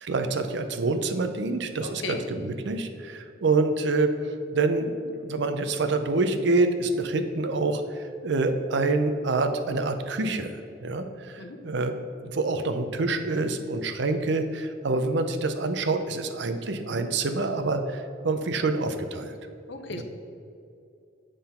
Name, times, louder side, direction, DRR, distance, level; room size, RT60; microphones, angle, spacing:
voice 1, 0.0-11.9 12.3-19.3 19.9-20.0, right 3 dB, 65° right, 8 dB, 0.6 m, -27 dB
voice 2, 1.8-2.2 11.4-11.6 19.7-20.0, left 3 dB, 65° left, 5 dB, 0.8 m, -35 dB
8.8 x 3.8 x 5.6 m, 2.5 s
head